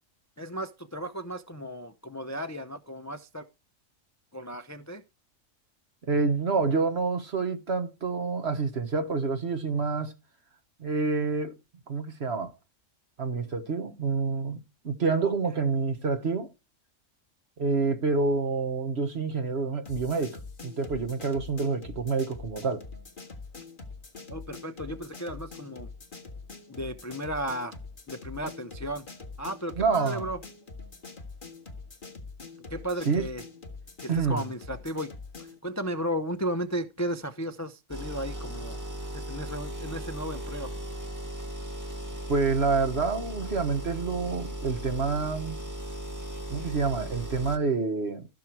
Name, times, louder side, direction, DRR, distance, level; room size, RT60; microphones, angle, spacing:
voice 1, 0.4-3.5 4.3-5.0 15.2-15.6 24.3-25.9 26.7-27.8 28.1-29.0 29.4-30.4 32.7-33.4 34.0-35.1 35.4-38.8 39.1-40.7, equal, 20° left, 0.5 m, -34 dB
voice 2, 6.0-10.1 10.8-11.5 11.9-12.5 13.2-16.5 17.6-22.9 29.8-30.3 33.1-33.3 34.1-34.4 42.3-45.6 46.5-48.3, right 4 dB, 55° right, 1.6 m, -28 dB
sound 1, 19.9-35.6, left 3 dB, 40° left, 1.9 m, -44 dB
sound 2, 37.9-47.6, right 1 dB, 15° right, 1.5 m, -37 dB
15.0 x 6.1 x 4.6 m
omnidirectional pair, 1.4 m